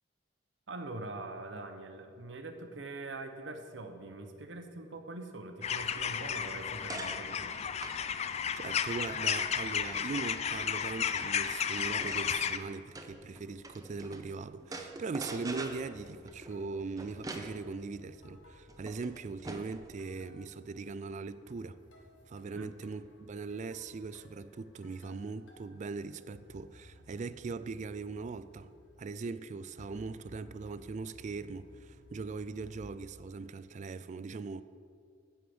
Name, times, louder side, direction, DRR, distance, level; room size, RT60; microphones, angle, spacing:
voice 1, 0.7-7.6 22.5-22.7, right 2 dB, 75° right, 1.0 m, -43 dB
sound 1, 5.6-12.6, left 7 dB, 35° left, 0.4 m, -33 dB
sound 2, 6.3-14.3 14.6-19.9, right 2 dB, 20° right, 0.7 m, -46 dB
voice 2, 8.6-21.8 22.3-28.7 29.0-34.6, right 4 dB, 40° right, 0.3 m, -40 dB
sound 3, 15.3-33.0, left 1 dB, 90° left, 1.3 m, -59 dB
10.5 x 5.1 x 7.8 m
head